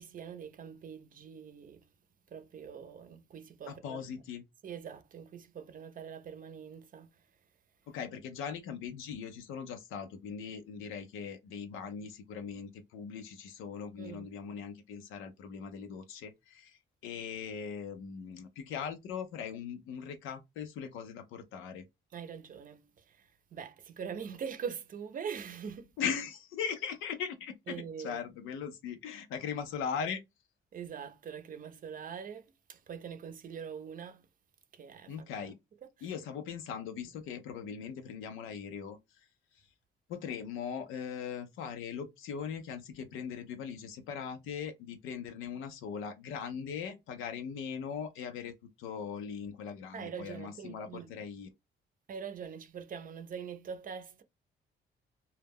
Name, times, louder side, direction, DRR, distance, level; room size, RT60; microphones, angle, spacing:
voice 1, 0.0-1.9 2.3-4.1 4.6-7.2 14.0-14.3 22.1-25.9 27.7-28.2 30.7-34.3 34.7-35.5 36.0-36.1 49.9-51.1 52.1-54.2, right 7 dB, 45° right, 0.5 m, -43 dB
voice 2, 3.7-4.4 7.9-21.8 26.0-30.2 35.1-35.6 36.0-39.0 40.1-48.5 48.8-51.5, left 7 dB, 90° left, 0.5 m, -40 dB
2.3 x 2.1 x 3.4 m
cardioid pair, 90°, 20 cm